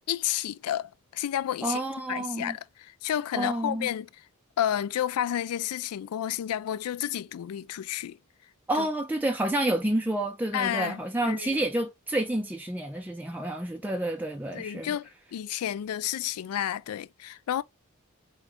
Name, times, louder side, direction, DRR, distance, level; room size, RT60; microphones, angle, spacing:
voice 1, 0.1-1.8 2.1-4.1 4.6-8.2 8.8-8.9 10.5-11.0 11.3-11.6 14.5-17.6, left 11 dB, 80° left, 0.3 m, -31 dB
voice 2, 1.6-2.6 3.3-3.9 8.7-15.0, right 1 dB, 10° right, 0.4 m, -29 dB
4.6 x 2.6 x 3.5 m
head